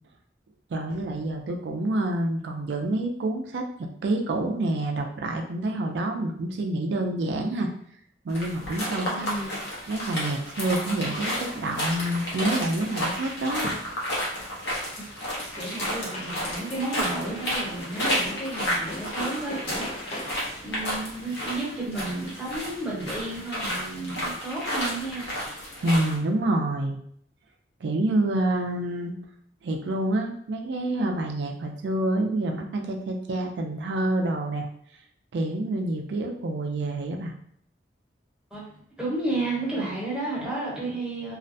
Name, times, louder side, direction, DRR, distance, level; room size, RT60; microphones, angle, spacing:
voice 1, 0.7-7.7 8.2-9.3 9.9-13.7 25.8-27.0 27.8-29.1 29.6-34.7 35.3-37.3, right 1 dB, 70° right, 3 dB, 0.4 m, -27 dB
sound 1, 8.3-26.2, equal, 75° left, 0.8 m, -32 dB
voice 2, 9.0-9.7 10.9-11.2 15.0-15.1 15.6-25.3 38.5-41.4, right 2 dB, 5° right, -8 dB, 0.9 m, -32 dB
sound 2, 11.5-12.5 14.9-15.0 15.2-20.6, left 1 dB, 35° left, 0.4 m, -41 dB
2.4 x 2.1 x 2.6 m, 0.65 s
head